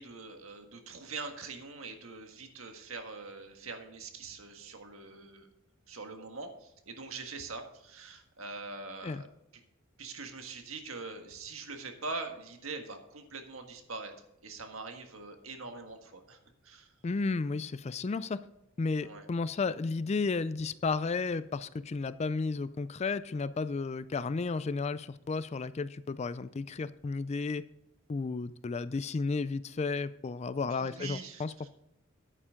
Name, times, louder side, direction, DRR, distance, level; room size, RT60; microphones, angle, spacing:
voice 1, 0.0-5.5 5.9-9.3 10.0-14.1 14.4-16.4 16.6-16.9 19.0-19.3 30.7-31.7, right 3 dB, 85° right, 5 dB, 1.6 m, -43 dB
voice 2, 17.0-18.4 18.8-27.6 28.1-31.7, left 4 dB, 30° left, 15 dB, 0.4 m, -33 dB
10.0 x 9.6 x 3.7 m, 0.85 s
head